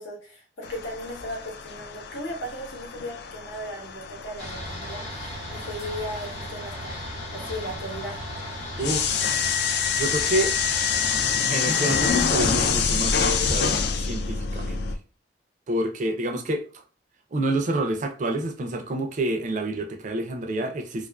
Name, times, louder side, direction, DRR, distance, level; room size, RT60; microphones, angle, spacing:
voice 1, 0.0-8.2, equal, 85° left, 0.9 m, -37 dB
sound 1, 0.6-15.0, left 6 dB, 60° left, 0.3 m, -27 dB
sound 2, 4.4-11.4, equal, 35° left, 1.0 m, -36 dB
voice 2, 8.8-9.2 9.9-10.6 11.5-14.8 15.7-16.6 17.3-21.1, right 1 dB, 40° right, 0.4 m, -28 dB
2.4 x 2.3 x 2.2 m
head